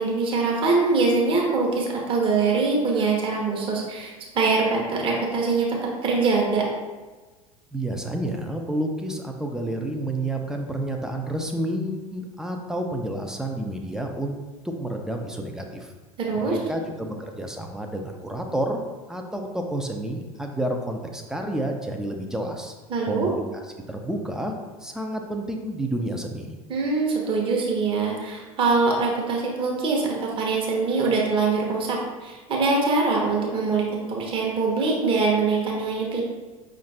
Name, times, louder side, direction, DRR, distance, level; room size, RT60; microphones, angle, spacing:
voice 1, 0.0-6.7 16.2-16.6 22.9-23.3 26.7-36.2, right 4 dB, 30° right, -2 dB, 1.0 m, -23 dB
voice 2, 7.7-14.4 14.6-15.9 16.3-18.8 19.1-22.7 23.0-24.5 24.8-26.6, right 1 dB, 5° right, 2 dB, 0.4 m, -30 dB
5.4 x 2.5 x 3.3 m, 1.3 s
figure-of-eight pair, 80°, 19 cm